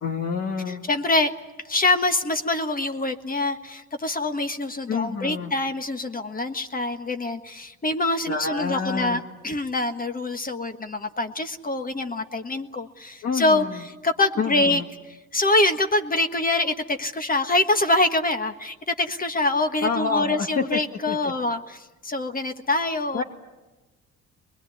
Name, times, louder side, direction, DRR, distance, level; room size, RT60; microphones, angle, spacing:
voice 1, 0.0-0.9 4.9-5.5 8.3-9.2 13.2-13.8 14.4-14.9 19.8-20.8 21.1-21.3 23.1-23.2, left 5 dB, 50° left, -2 dB, 2.6 m, -28 dB
voice 2, 0.7-1.3 1.7-14.8 15.3-23.2, left 2 dB, 30° left, 7 dB, 1.5 m, -25 dB
23.5 x 21.0 x 9.9 m, 1.1 s
cardioid pair, 90°, 30 cm